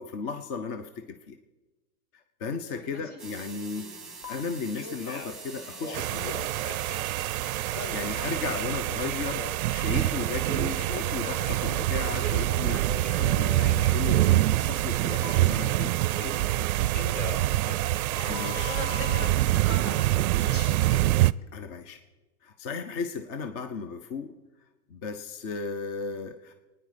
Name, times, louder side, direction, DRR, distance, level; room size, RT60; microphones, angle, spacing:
voice 1, 0.0-1.4 2.1-3.9 4.3-6.3 7.9-16.9 18.3-19.0 21.5-22.0 22.4-24.4 24.9-26.5, left 5 dB, 25° left, 9 dB, 0.6 m, -35 dB
voice 2, 2.5-3.2 3.7-4.0 7.8-8.8 17.6-21.1, left 1 dB, 70° left, -1 dB, 6.0 m, -41 dB
sound 1, 3.2-8.7, right 4 dB, ahead, 1.4 m, -44 dB
Telephone, 4.2-4.3 4.7-5.4 5.7-7.1 7.7-10.2 10.5-13.2 13.6-13.9 15.2-16.6 16.9-19.3, left 5 dB, 50° left, 1.7 m, -41 dB
sound 2, 5.9-21.3, right 16 dB, 70° right, 0.5 m, -26 dB
23.0 x 9.8 x 5.0 m, 1.2 s
hypercardioid pair, 145°, 45 cm